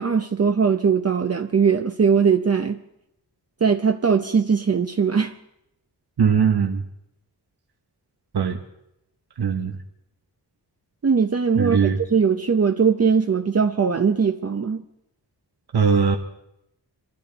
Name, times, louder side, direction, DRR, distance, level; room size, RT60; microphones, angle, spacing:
voice 1, 0.0-2.8 3.6-5.3 11.0-14.8, right 6 dB, 40° right, 0.7 m, -20 dB
voice 2, 6.2-6.8 8.3-8.6 9.4-9.8 11.6-12.0 15.7-16.2, right 6 dB, 70° right, 1.2 m, -20 dB
25.0 x 13.0 x 4.0 m
wide cardioid pair, 90°, 40 cm